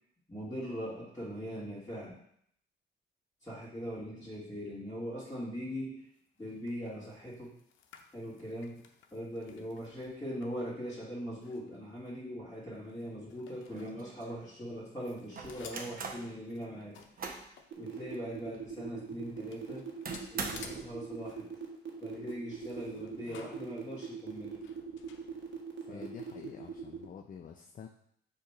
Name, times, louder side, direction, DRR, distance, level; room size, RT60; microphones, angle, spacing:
voice 1, 0.3-2.1 3.4-6.0 6.4-7.5 8.1-8.8 9.1-17.0 17.7-19.9 20.3-21.5 22.0-24.6 25.9-26.1, equal, 15° left, -10 dB, 2.3 m, -41 dB
sound 1, 6.1-14.7 15.0-18.3 18.8-18.9 19.0-25.8, left 6 dB, 75° left, 0.7 m, -56 dB
sound 2, 13.2-13.3 13.7-14.4 15.4-16.3 16.8-17.5 18.0-18.1 18.5-18.6 20.1-20.9, right 4 dB, 45° right, 0.9 m, -41 dB
sound 3, 17.7-27.0, right 6 dB, 65° right, 1.4 m, -41 dB
voice 2, 25.9-27.9, left 7 dB, 45° left, 3 dB, 0.5 m, -47 dB
7.0 x 3.0 x 4.9 m, 0.68 s
cardioid pair, 90°, 20 cm